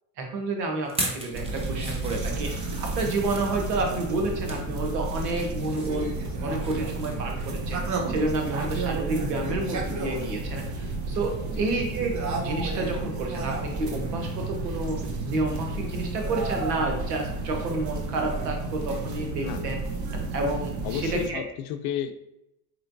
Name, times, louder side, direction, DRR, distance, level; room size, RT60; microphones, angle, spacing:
voice 1, 0.2-6.1 6.4-19.8 20.1-21.4, right 2 dB, 90° right, 2 dB, 1.0 m, -30 dB
sound 1, 0.9-3.5 4.1-4.7 5.0-6.8 7.0-7.2 7.6-7.7, right 1 dB, 10° right, 0.9 m, -37 dB
sound 2, 1.3-21.3, right 3 dB, 40° right, 0.9 m, -31 dB
Mechanical fan, 10.4-18.8, left 3 dB, 25° left, 0.9 m, -50 dB
voice 2, 20.8-22.1, left 9 dB, 75° left, 9 dB, 0.6 m, -32 dB
4.5 x 3.2 x 2.6 m, 0.87 s
hypercardioid pair, 75°, 47 cm